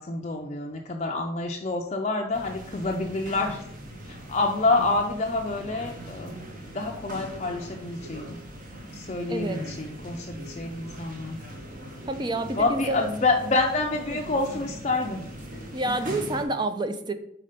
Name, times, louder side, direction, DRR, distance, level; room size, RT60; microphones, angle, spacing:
voice 1, 0.0-3.6 4.1-6.3 6.7-8.4 8.9-11.4 12.5-15.2 15.9-16.0, left 3 dB, 35° left, 1 dB, 0.5 m, -27 dB
sound 1, 2.3-16.4, equal, 45° right, 1.2 m, -41 dB
voice 2, 9.3-9.6 12.1-13.1 14.1-14.2 15.7-17.1, right 2 dB, 25° right, 9 dB, 0.5 m, -28 dB
5.5 x 4.2 x 5.1 m, 0.70 s
head